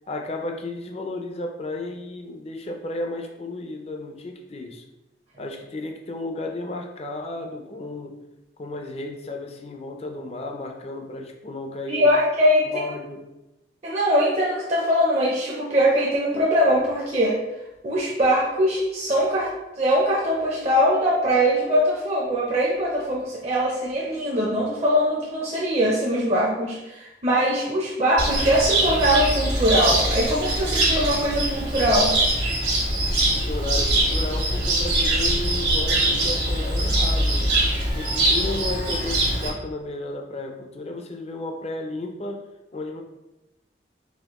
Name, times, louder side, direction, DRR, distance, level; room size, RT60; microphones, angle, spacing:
voice 1, 0.1-4.8 5.4-8.2 8.6-12.1 12.7-13.3 33.3-37.5 37.9-42.5 42.7-43.0, left 2 dB, 35° left, 3 dB, 0.4 m, -33 dB
voice 2, 11.9-12.8 13.8-17.4 17.8-32.2, equal, 35° right, -5 dB, 0.6 m, -22 dB
Cricket, 28.2-39.5, right 1 dB, 80° right, 1.4 m, -23 dB
4.2 x 2.9 x 2.9 m, 0.96 s
head